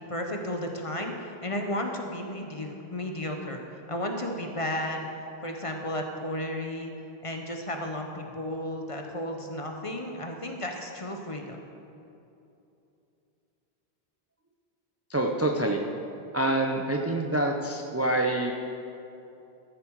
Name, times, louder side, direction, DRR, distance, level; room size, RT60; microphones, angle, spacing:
voice 1, 0.0-3.6 3.9-5.1 5.4-6.9 7.2-11.7, left 1 dB, 35° left, 3 dB, 0.8 m, -33 dB
voice 2, 15.1-15.8 16.3-18.5, right 1 dB, 20° right, 2 dB, 0.4 m, -26 dB
13.5 x 7.3 x 4.6 m, 2.8 s
omnidirectional pair, 1.1 m